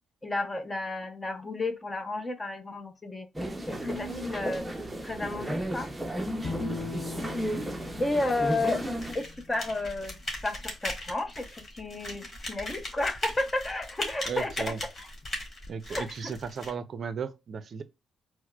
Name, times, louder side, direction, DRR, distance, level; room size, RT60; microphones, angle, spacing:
voice 1, 0.2-3.3 3.7-4.6 5.0-5.9 8.0-8.8 9.1-10.2 10.4-14.7 15.9-16.3, left 2 dB, 20° left, 0.7 m, -32 dB
sound 1, 3.3-9.1, equal, 10° right, 0.6 m, -33 dB
Bowed string instrument, 6.4-9.7, left 4 dB, 55° left, 0.9 m, -40 dB
voice 2, 6.6-7.0 14.3-14.8 15.7-17.8, right 6 dB, 50° right, 0.5 m, -36 dB
sound 2, 9.0-16.7, left 1 dB, 40° left, 1.5 m, -38 dB
4.4 x 2.0 x 2.2 m
cardioid pair, 90°, 0 cm